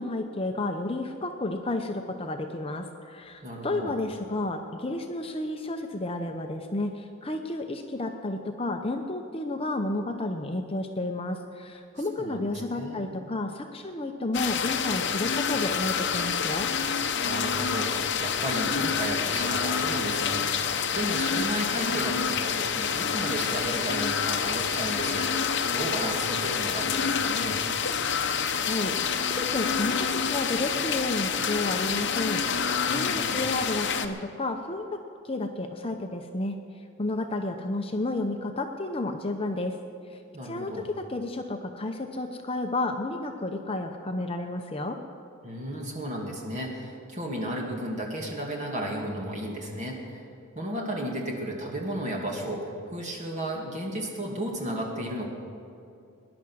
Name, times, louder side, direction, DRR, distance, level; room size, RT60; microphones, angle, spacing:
voice 1, 0.0-16.7 28.6-34.9 35.2-36.6 37.0-39.7 40.4-45.0, left 2 dB, 25° left, 4 dB, 0.8 m, -31 dB
voice 2, 3.4-3.9 12.2-12.4 12.7-13.0 17.2-25.4 25.7-27.6 32.9-33.4 40.3-40.9 45.4-50.2 50.5-55.3, right 1 dB, 35° right, -1 dB, 2.4 m, -33 dB
sound 1, 14.3-34.1, left 6 dB, 55° left, 0.9 m, -28 dB
19.0 x 10.5 x 6.3 m, 2.6 s
head